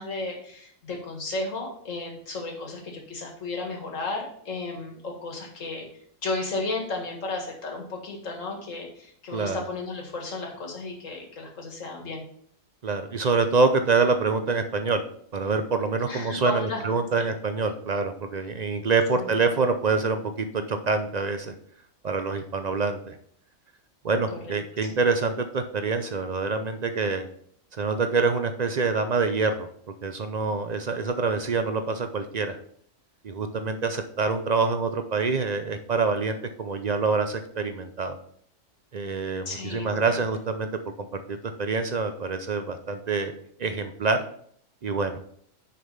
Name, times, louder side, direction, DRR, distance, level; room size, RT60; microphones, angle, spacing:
voice 1, 0.0-5.9 6.2-12.2 16.1-16.8 17.2-17.3 19.1-19.4 24.3-24.6 24.9-25.0 39.5-40.2, left 3 dB, 70° left, 1 dB, 2.1 m, -34 dB
voice 2, 12.8-15.0 15.3-21.5 22.0-23.1 24.0-27.3 27.8-29.7 30.0-32.6 33.2-38.2 38.9-40.7 41.3-43.3 43.6-44.2 44.8-45.2, right 4 dB, 60° right, 8 dB, 0.4 m, -26 dB
6.5 x 5.4 x 5.5 m, 0.64 s
omnidirectional pair, 1.4 m